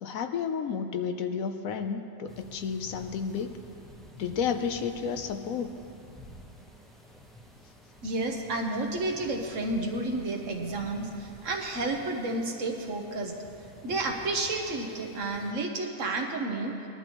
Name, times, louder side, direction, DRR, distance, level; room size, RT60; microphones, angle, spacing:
voice 1, 0.0-3.6 4.2-5.7, left 6 dB, 70° left, 7 dB, 1.1 m, -31 dB
sound 1, 2.3-15.5, equal, ahead, 0.9 m, -51 dB
voice 2, 8.0-13.4 13.8-16.7, right 2 dB, 60° right, 2 dB, 1.4 m, -31 dB
19.5 x 11.5 x 3.0 m, 2.7 s
omnidirectional pair, 1.5 m